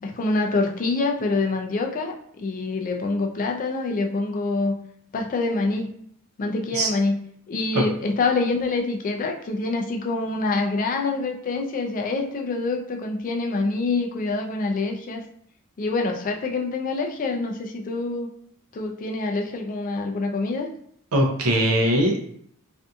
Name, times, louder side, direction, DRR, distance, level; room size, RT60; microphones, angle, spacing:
voice 1, 0.0-4.8 5.1-5.9 6.4-7.2 7.5-15.2 15.8-18.3 18.7-20.7, left 3 dB, 40° left, 2 dB, 0.4 m, -26 dB
voice 2, 21.1-22.3, right 1 dB, 70° right, 1 dB, 0.6 m, -21 dB
2.6 x 2.5 x 2.3 m, 0.64 s
head